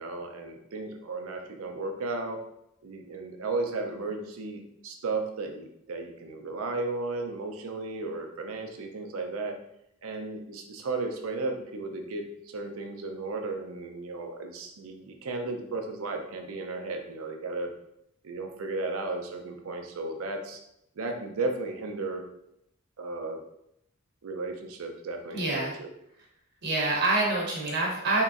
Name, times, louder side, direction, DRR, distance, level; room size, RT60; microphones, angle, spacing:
voice 1, 0.0-2.4 2.8-9.6 10.0-17.7 18.2-20.6 21.0-22.2 23.0-23.4 24.2-25.9, right 3 dB, 80° right, 4 dB, 0.5 m, -34 dB
voice 2, 25.3-25.7 26.6-28.2, right 2 dB, 55° right, -2 dB, 0.8 m, -26 dB
3.6 x 3.0 x 2.4 m, 0.77 s
head